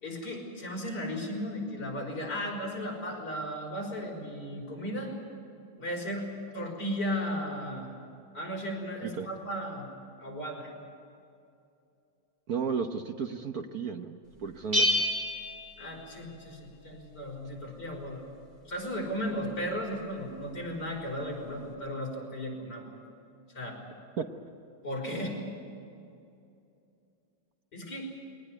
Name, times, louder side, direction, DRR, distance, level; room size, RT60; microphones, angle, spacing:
voice 1, 0.0-5.1 5.8-6.3 6.5-7.9 8.3-9.9 10.2-10.7 15.8-18.2 18.7-22.8 23.5-23.8 24.8-25.4 27.7-28.1, equal, 55° left, -1 dB, 6.2 m, -35 dB
voice 2, 12.5-15.3 24.2-24.3, right 6 dB, 55° right, 6 dB, 1.4 m, -34 dB
Bell, 14.7-16.6, equal, 20° right, 4.5 m, -29 dB
22.5 x 19.0 x 9.4 m, 2.6 s
omnidirectional pair, 2.1 m